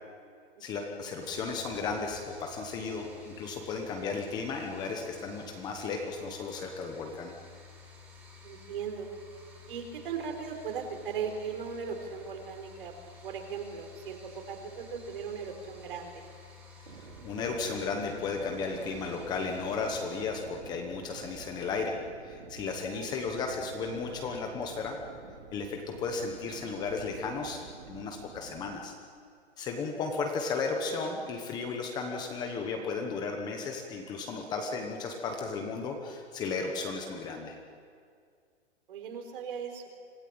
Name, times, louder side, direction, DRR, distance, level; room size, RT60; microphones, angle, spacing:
voice 1, 0.6-7.3 16.8-21.9 22.2-25.0 25.5-28.9 29.6-37.6, left 4 dB, 10° left, 2 dB, 1.1 m, -34 dB
sound 1, 1.2-20.1, left 4 dB, 5° right, 3.9 m, -52 dB
voice 2, 8.4-9.1 9.7-12.9 13.2-16.2 22.8-23.1 38.9-39.9, right 6 dB, 50° right, 4 dB, 4.2 m, -38 dB
sound 2, 16.8-28.7, right 5 dB, 70° right, 3.5 m, -49 dB
26.0 x 17.0 x 8.8 m, 2.2 s
hypercardioid pair, 170°, 34 cm